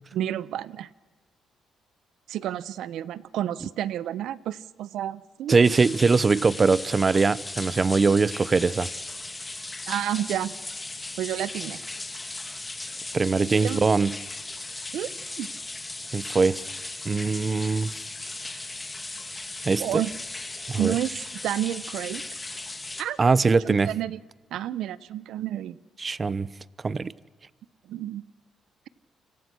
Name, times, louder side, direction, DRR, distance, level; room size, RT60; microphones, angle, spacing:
voice 1, 0.1-0.9 2.3-5.6 9.9-10.5 11.2-11.8 13.6-13.8 14.9-15.1 15.4-15.5 19.8-20.1 20.8-22.2 23.0-23.2 23.6-24.2 24.5-25.8 27.9-28.2, right 12 dB, 80° right, 18 dB, 0.9 m, -30 dB
voice 2, 5.5-8.9 13.1-14.1 16.1-16.6 17.0-17.9 19.6-20.0 20.7-20.9 23.2-23.9 26.0-26.5 26.8-27.1, right 4 dB, 30° right, 19 dB, 0.9 m, -22 dB
sound 1, 5.6-23.0, left 2 dB, 20° left, 2.9 m, -37 dB
29.0 x 26.5 x 6.3 m, 1.3 s
cardioid pair, 90°, 0 cm